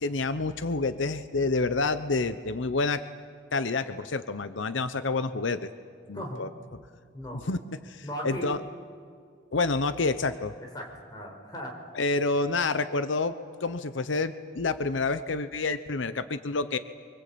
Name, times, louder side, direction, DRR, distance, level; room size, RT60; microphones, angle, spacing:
voice 1, 0.0-3.0 3.5-5.7 6.1-6.5 7.5-7.6 7.8-8.6 9.5-10.5 12.0-13.4 13.6-16.8, left 3 dB, 85° left, 11 dB, 0.9 m, -28 dB
voice 2, 8.0-8.5 10.7-11.9 12.2-12.3, equal, 20° left, 0 dB, 4.8 m, -37 dB
25.0 x 23.0 x 8.6 m, 2.3 s
head